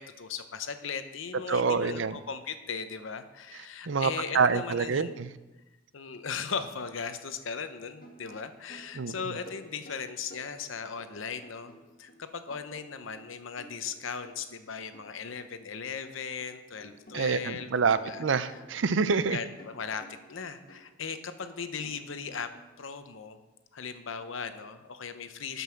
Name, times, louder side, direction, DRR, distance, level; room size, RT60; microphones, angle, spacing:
voice 1, 0.0-5.1 5.9-11.7 12.0-17.7 18.0-18.2 19.3-20.0 20.3-22.5 22.8-23.4 23.7-25.6, left 6 dB, 80° left, 9 dB, 0.8 m, -38 dB
voice 2, 1.5-2.2 3.9-5.3 8.9-9.1 17.1-19.4, right 5 dB, 70° right, 14 dB, 0.5 m, -26 dB
sound 1, 8.0-12.2 12.5-15.5 15.8-16.5 16.8-22.7, equal, 45° left, 1.7 m, -53 dB
12.5 x 5.4 x 5.8 m, 1.1 s
head